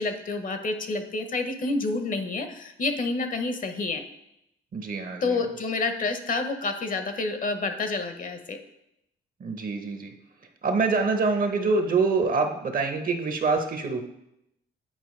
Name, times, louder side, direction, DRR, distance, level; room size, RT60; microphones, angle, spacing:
voice 1, 0.0-4.0 5.2-8.6, left 3 dB, 40° left, 7 dB, 0.8 m, -28 dB
voice 2, 4.7-5.4 9.4-10.1 10.6-14.0, right 4 dB, 45° right, 6 dB, 0.9 m, -25 dB
9.0 x 4.4 x 3.2 m, 0.83 s
cardioid pair, 90°, 20 cm